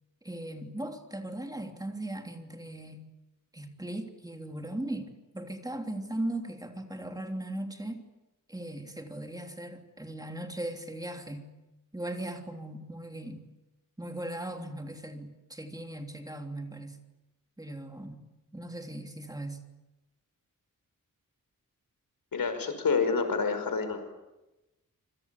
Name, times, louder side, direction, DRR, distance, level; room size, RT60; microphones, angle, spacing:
voice 1, 0.2-3.0 3.5-8.0 8.5-11.4 11.9-13.4 14.0-17.0 17.6-18.2 18.5-19.6, right 1 dB, 10° right, 4 dB, 3.2 m, -38 dB
voice 2, 22.3-24.1, left 5 dB, 90° left, 8 dB, 5.6 m, -28 dB
27.0 x 25.5 x 8.5 m, 1.0 s
wide cardioid pair, 140°, 33 cm